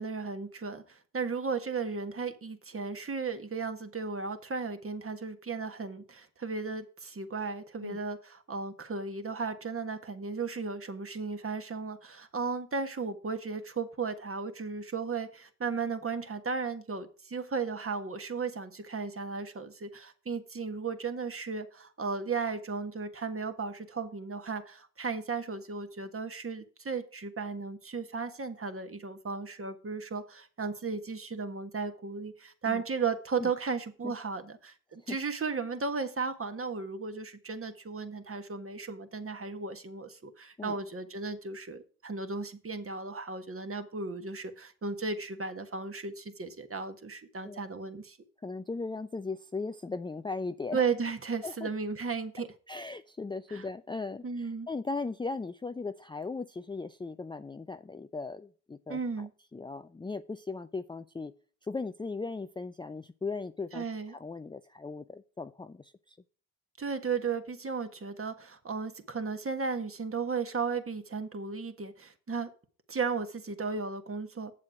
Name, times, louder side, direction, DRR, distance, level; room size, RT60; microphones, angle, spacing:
voice 1, 0.0-48.2 50.7-52.5 53.5-53.6 54.2-54.7 58.9-59.3 63.7-64.2 66.8-72.5 72.9-74.5, right 4 dB, 30° right, 8 dB, 1.6 m, -35 dB
voice 2, 48.4-50.8 51.4-51.7 52.7-61.3 61.6-66.2, left 3 dB, 10° left, 10 dB, 0.5 m, -38 dB
7.7 x 7.5 x 4.8 m, 0.41 s
hypercardioid pair, 50°, 41 cm